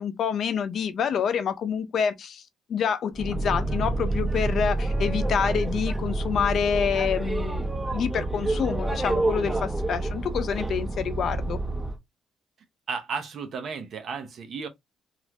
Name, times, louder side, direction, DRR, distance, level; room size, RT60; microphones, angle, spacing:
voice 1, 0.0-2.4 2.7-7.6 7.9-11.6, left 7 dB, 65° left, 0.6 m, -27 dB
Boat Water vehicle, 3.1-12.0, right 2 dB, 25° right, 1.6 m, -28 dB
voice 2, 12.9-14.7, right 5 dB, 60° right, 0.8 m, -33 dB
3.1 x 2.5 x 2.8 m
cardioid pair, 90°, 0 cm